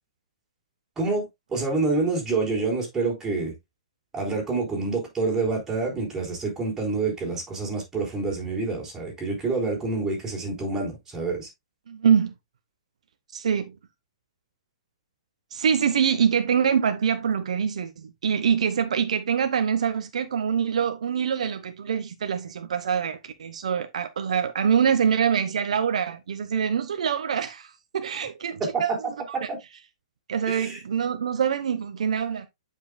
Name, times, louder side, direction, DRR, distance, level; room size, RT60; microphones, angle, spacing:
voice 1, 1.0-3.5 4.1-11.5 30.5-30.8, right 3 dB, 10° right, 4.4 m, -27 dB
voice 2, 11.9-12.3 13.3-13.7 15.5-29.1 29.4-29.5 30.3-32.5, right 7 dB, 75° right, 1.0 m, -25 dB
9.4 x 5.7 x 2.3 m
hypercardioid pair, 145°, 4 cm